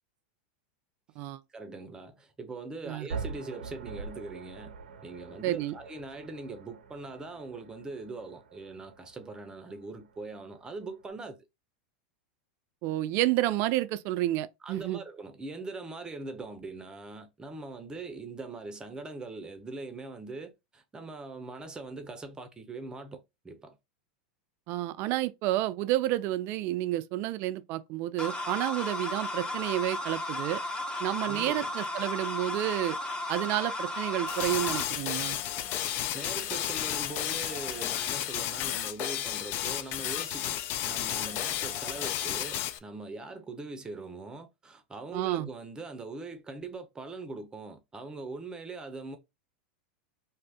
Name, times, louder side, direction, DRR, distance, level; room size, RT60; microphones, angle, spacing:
voice 1, 1.5-4.7 5.0-11.4 14.6-23.8 31.2-31.7 36.1-40.6 40.9-49.2, right 3 dB, 15° right, 0.6 m, -41 dB
sound 1, 3.1-11.1, right 5 dB, 85° right, 0.6 m, -44 dB
voice 2, 5.4-5.7 12.8-15.0 24.7-30.6 31.0-33.0 33.3-35.4 45.1-45.5, right 15 dB, 50° right, 0.3 m, -30 dB
sound 2, 28.2-34.8, left 1 dB, 15° left, 0.8 m, -34 dB
sound 3, 34.3-42.8, left 12 dB, 45° left, 0.4 m, -32 dB
2.7 x 2.5 x 3.4 m
hypercardioid pair, 120°, 5 cm